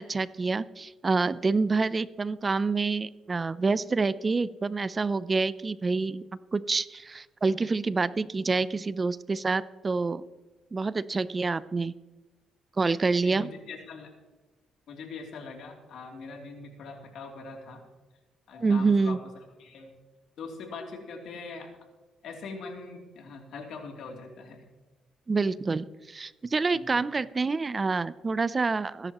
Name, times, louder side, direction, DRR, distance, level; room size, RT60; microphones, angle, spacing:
voice 1, 0.0-6.2 6.5-10.2 10.7-11.9 12.8-13.5 18.6-19.2 25.3-29.1, right 4 dB, 30° right, 17 dB, 0.5 m, -27 dB
voice 2, 13.2-14.1 14.9-17.8 18.5-19.2 19.6-19.9 20.4-21.7 22.2-24.6 26.7-26.9, left 4 dB, 75° left, 1 dB, 3.0 m, -42 dB
21.5 x 10.5 x 3.0 m, 1.2 s
cardioid pair, 90°, 0 cm